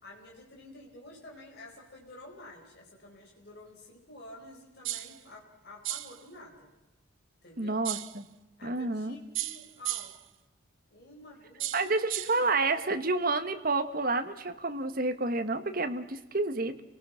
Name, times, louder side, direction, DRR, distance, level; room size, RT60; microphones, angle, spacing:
voice 1, 0.0-6.7 7.4-7.8 8.6-10.1 10.9-11.8 12.2-12.5, left 1 dB, 50° left, -1 dB, 4.6 m, -50 dB
sound 1, 4.8-5.2 5.8-6.2 7.8-8.2 9.3-10.2 11.6-12.4, right 15 dB, 65° right, 0.8 m, -35 dB
voice 2, 7.6-8.2 8.6-9.1 11.7-16.8, right 3 dB, 45° right, 8 dB, 1.4 m, -29 dB
29.0 x 19.0 x 5.7 m, 1.0 s
head